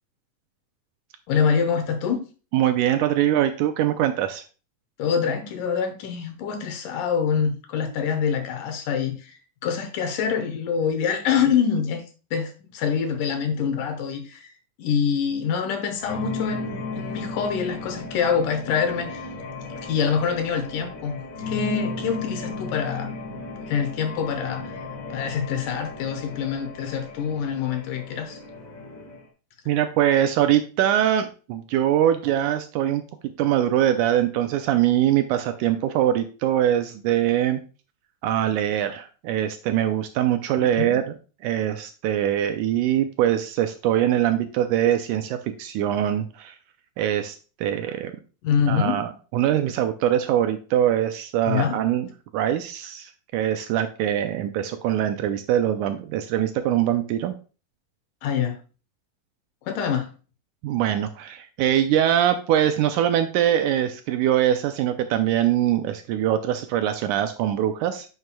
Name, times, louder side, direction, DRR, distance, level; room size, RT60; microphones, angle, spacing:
voice 1, 1.3-2.2 5.0-12.0 12.3-14.5 14.8-19.3 19.8-23.1 23.7-24.7 25.1-28.4 40.8-41.0 48.4-49.0 51.5-51.8 58.2-58.6 59.6-60.1, left 7 dB, 75° left, 2.5 m, -25 dB
voice 2, 2.5-4.4 29.7-33.0 33.4-37.6 38.2-41.0 41.4-46.6 47.0-48.1 48.7-57.3 60.6-68.1, right 11 dB, 80° right, 1.9 m, -23 dB
sound 1, 16.0-29.2, left 3 dB, 50° left, 1.0 m, -35 dB
9.4 x 6.1 x 2.3 m
omnidirectional pair, 3.9 m